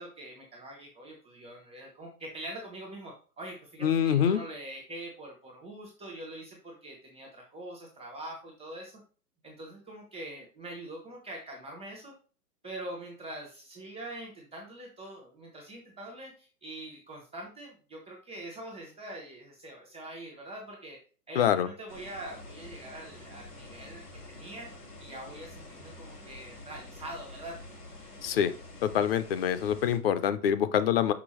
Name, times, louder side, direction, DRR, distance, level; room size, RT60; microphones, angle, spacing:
voice 1, 0.0-9.0 9.4-12.1 12.6-21.0 21.3-24.7 25.0-27.6, right 1 dB, 5° right, -11 dB, 0.3 m, -44 dB
voice 2, 3.8-4.4 21.4-21.7 28.2-28.5 28.8-31.1, left 9 dB, 40° left, 12 dB, 0.6 m, -25 dB
sound 1, 21.9-30.0, left 2 dB, 85° left, 3.8 m, -48 dB
6.0 x 5.7 x 3.1 m, 0.37 s
figure-of-eight pair, 120°, 47 cm